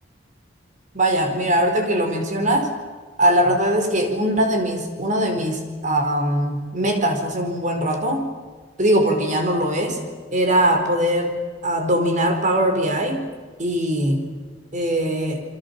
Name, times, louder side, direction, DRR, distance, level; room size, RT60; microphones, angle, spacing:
voice 1, 0.9-2.7 3.2-8.3 8.8-10.0 10.3-11.3 11.6-13.2 13.6-14.2 14.7-15.4, right 1 dB, 45° right, 5 dB, 4.5 m, -21 dB
29.0 x 23.5 x 7.1 m, 1.4 s
head